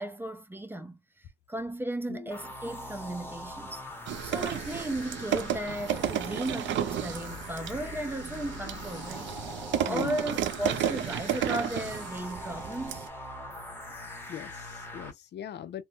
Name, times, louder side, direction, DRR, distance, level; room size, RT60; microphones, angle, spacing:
voice 1, 0.0-3.8 4.2-9.4 9.9-13.1, right 1 dB, 10° right, 0.5 m, -35 dB
sound 1, 2.3-15.1, left 1 dB, 10° left, 1.1 m, -42 dB
sound 2, 4.1-13.1, right 10 dB, 70° right, 0.4 m, -33 dB
voice 2, 9.9-10.2 14.3-15.8, left 10 dB, 60° left, 0.5 m, -39 dB
3.1 x 2.1 x 2.5 m
cardioid pair, 90°, 20 cm